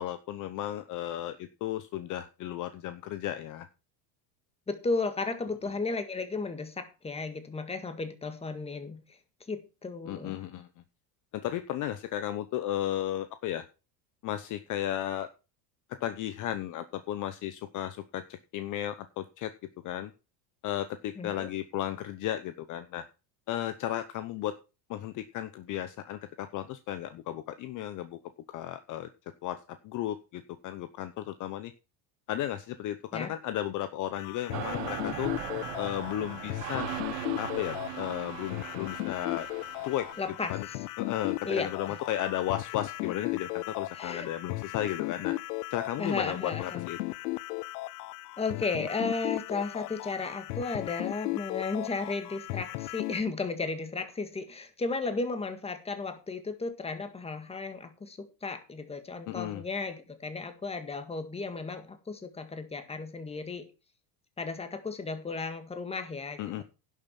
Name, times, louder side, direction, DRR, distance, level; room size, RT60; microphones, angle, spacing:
voice 1, 0.0-3.7 10.1-10.7 11.3-13.7 14.2-15.3 16.0-19.5 19.8-20.1 20.6-23.0 23.5-24.5 24.9-28.2 28.5-29.1 29.4-31.7 32.3-35.3 35.8-36.9 37.4-39.5 39.8-40.1 40.5-40.7 41.0-45.3 45.7-47.0 59.3-59.6 66.4-66.6, left 12 dB, 40° left, 12 dB, 0.8 m, -34 dB
voice 2, 4.7-9.0 9.5-10.4 21.2-21.5 33.1-33.3 40.2-40.8 41.5-41.7 43.9-44.3 46.0-46.8 48.4-63.7 64.4-66.4, left 3 dB, 15° left, 8 dB, 1.8 m, -34 dB
sound 1, 34.2-53.2, left 20 dB, 80° left, 0.7 m, -36 dB
sound 2, 34.5-40.3, right 11 dB, 85° right, 2.1 m, -39 dB
11.0 x 7.4 x 5.9 m, 0.31 s
cardioid pair, 140°, 46 cm